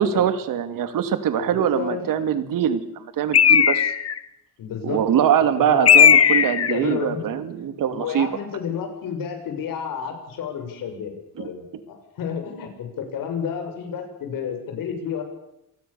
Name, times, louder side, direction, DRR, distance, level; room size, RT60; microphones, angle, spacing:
voice 1, 0.0-3.9 4.8-8.3 11.4-11.5, right 9 dB, 80° right, 10 dB, 2.6 m, -23 dB
voice 2, 1.4-2.2 4.6-5.0 5.6-6.1 6.7-7.2 7.9-15.2, left 7 dB, 85° left, 5 dB, 6.7 m, -31 dB
Bird, 3.3-4.2 5.9-6.8, left 8 dB, 50° left, 1.5 m, -15 dB
27.0 x 20.0 x 7.1 m, 0.83 s
cardioid pair, 115°, 33 cm